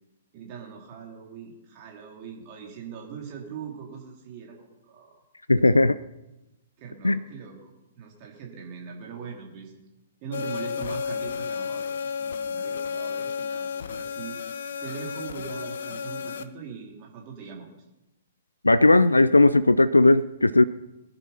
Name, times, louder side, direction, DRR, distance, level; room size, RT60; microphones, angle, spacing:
voice 1, 0.3-5.1 6.8-9.7 10.2-14.4 14.8-17.7, right 6 dB, 35° right, 0 dB, 3.1 m, -41 dB
voice 2, 5.5-6.0 7.0-7.2 18.6-20.6, left 2 dB, 80° left, 16 dB, 0.5 m, -17 dB
sound 1, 10.3-16.4, left 6 dB, 60° left, 1.0 m, -32 dB
20.5 x 10.5 x 5.6 m, 0.99 s
figure-of-eight pair, 115°, 0 cm